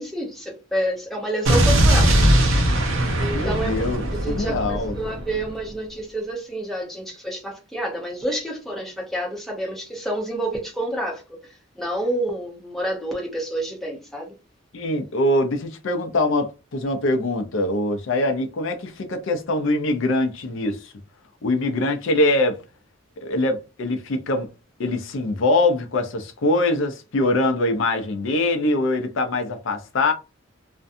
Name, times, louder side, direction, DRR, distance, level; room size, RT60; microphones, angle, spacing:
voice 1, 0.0-2.2 3.2-3.8 4.1-14.3, right 1 dB, ahead, 0.6 m, -29 dB
Explosion, 1.4-5.5, right 1 dB, 75° right, 0.6 m, -20 dB
voice 2, 3.3-5.0 14.7-20.9 21.4-22.6 23.2-24.5 24.8-30.1, left 2 dB, 70° left, 0.5 m, -23 dB
2.5 x 2.2 x 2.5 m
head